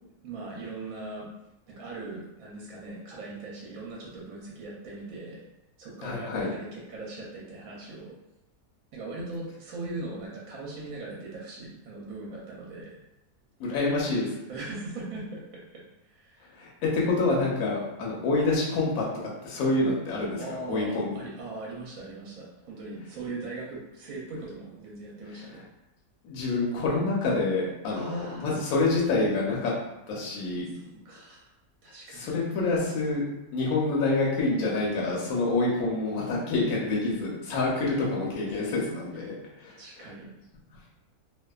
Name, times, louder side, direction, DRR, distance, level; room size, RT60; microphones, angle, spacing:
voice 1, 0.2-1.3 1.7-5.4 5.8-8.1 8.9-13.0 14.5-16.5 20.4-25.7 27.9-28.5 30.7-31.5 31.8-32.4 38.5-38.6 39.1-39.4 39.8-40.3, right 2 dB, 70° right, -4 dB, 1.0 m, -40 dB
voice 2, 6.0-6.5 13.6-14.4 16.5-19.0 19.4-20.4 20.7-21.2 26.2-29.7 30.1-30.7 32.1-33.2 33.5-40.1, left 3 dB, 70° left, -4 dB, 1.0 m, -27 dB
2.6 x 2.2 x 2.2 m, 0.94 s
omnidirectional pair, 1.7 m